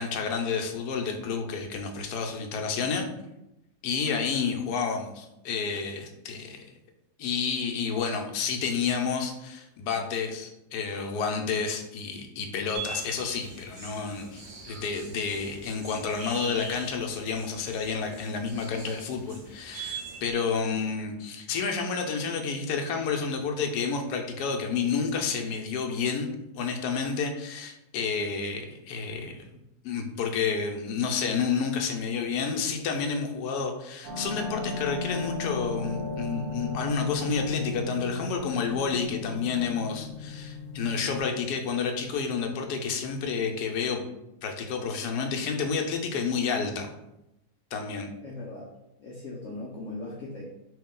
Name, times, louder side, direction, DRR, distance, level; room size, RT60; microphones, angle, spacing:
voice 1, 0.0-3.1 3.8-6.6 7.2-26.3 26.6-29.4 29.8-44.0 44.4-46.9 47.7-48.1, left 5 dB, 80° left, 3 dB, 1.1 m, -30 dB
sound 1, 12.7-20.3, right 4 dB, 55° right, 0.5 m, -42 dB
sound 2, 34.0-41.2, left 3 dB, 70° right, 1.7 m, -35 dB
voice 2, 48.2-48.7 49.0-50.4, left 2 dB, 65° left, -3 dB, 0.8 m, -39 dB
3.0 x 2.7 x 3.7 m, 0.88 s
omnidirectional pair, 1.7 m